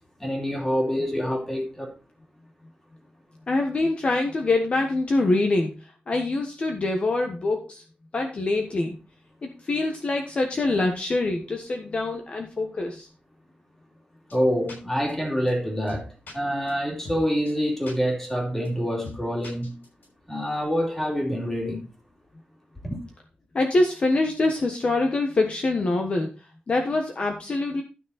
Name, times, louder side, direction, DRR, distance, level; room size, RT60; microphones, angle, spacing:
voice 1, 0.2-1.9 14.3-16.1 16.3-19.8 20.3-21.9 22.8-23.0, equal, 10° left, 2.7 m, -26 dB
voice 2, 3.5-5.7 6.1-7.8 8.1-9.0 9.4-13.1 23.5-26.3 26.7-27.8, left 2 dB, 40° left, 1.3 m, -24 dB
sound 1, 14.3-14.4 14.7-14.8 15.1-15.2 15.5-15.6 15.9-16.3 16.7-16.8 17.0-17.2 17.5-17.6 17.9-18.0 18.2-18.3 18.6-18.7 19.0-19.2 19.4-20.0, left 2 dB, 90° left, 6.3 m, -40 dB
12.5 x 6.1 x 4.1 m
wide cardioid pair, 180°, 3 cm